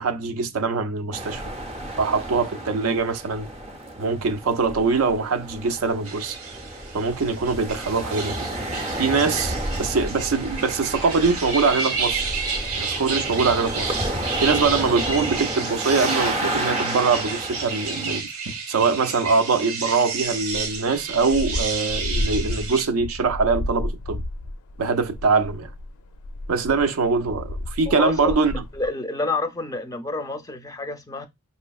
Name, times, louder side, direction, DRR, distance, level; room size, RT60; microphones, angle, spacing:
voice 1, 0.0-1.4 2.0-3.5 4.0-6.4 6.9-8.5 9.0-12.2 12.8-13.9 14.4-18.3 18.7-24.2 24.8-25.7 26.5-28.6, right 4 dB, 70° right, 0.5 m, -23 dB
sound 1, 1.1-18.2, right 1 dB, 30° right, 0.6 m, -31 dB
sound 2, 6.1-22.9, right 4 dB, 90° right, 1.0 m, -31 dB
sound 3, 20.4-28.9, left 1 dB, 85° left, 0.4 m, -32 dB
voice 2, 27.9-28.4 28.7-31.3, left 2 dB, 15° left, 0.5 m, -28 dB
4.8 x 2.7 x 2.3 m
head